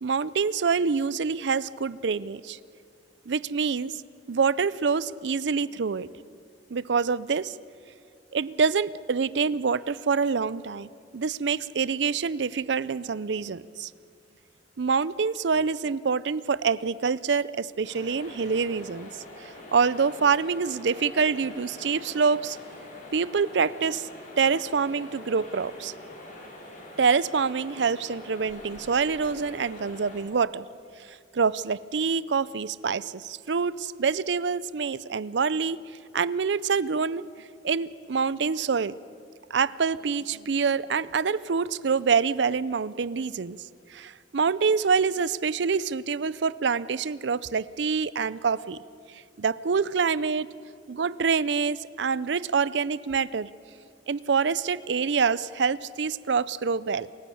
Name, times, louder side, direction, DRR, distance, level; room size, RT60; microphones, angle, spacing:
voice 1, 0.0-2.6 3.3-3.9 4.3-6.1 6.7-7.6 8.3-13.9 14.8-19.1 19.4-22.6 23.1-24.1 24.4-25.9 27.0-30.7 31.0-35.8 36.1-37.3 37.6-38.9 39.5-43.6 43.9-48.8 49.1-50.5 50.9-53.5 54.1-57.1, right 5 dB, 70° right, 19 dB, 0.5 m, -26 dB
sound 1, 17.8-30.2, left 1 dB, 45° left, 6.3 m, -44 dB
28.5 x 16.0 x 8.5 m, 2.3 s
head